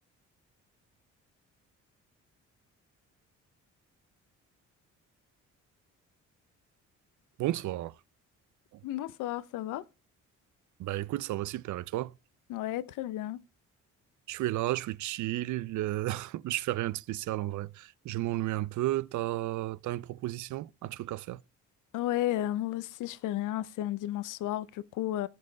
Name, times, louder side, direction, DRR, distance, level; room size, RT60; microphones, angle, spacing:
voice 1, 7.4-7.9 10.8-12.1 14.3-21.4, right 16 dB, 75° right, 0.5 m, -33 dB
voice 2, 8.8-9.8 12.5-13.4 21.9-25.3, left 14 dB, 85° left, 0.6 m, -33 dB
14.5 x 5.4 x 4.0 m
cardioid pair, 90°, 30 cm